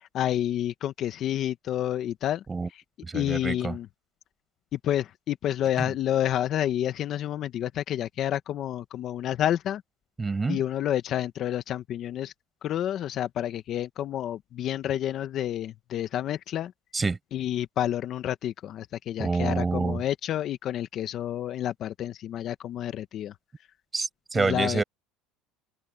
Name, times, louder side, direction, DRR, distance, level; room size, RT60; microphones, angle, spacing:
voice 1, 0.0-2.4 2.7-2.8 3.1-3.9 4.8-9.8 10.5-12.3 12.6-16.7 17.3-23.3 24.3-24.8, left 11 dB, 45° left, 1.0 m, -29 dB
voice 2, 3.0-3.8 5.8-5.9 10.2-10.6 16.9-17.2 19.2-20.0 23.9-24.8, right 4 dB, 15° right, 6.4 m, -27 dB
cardioid pair, 135°, 0 cm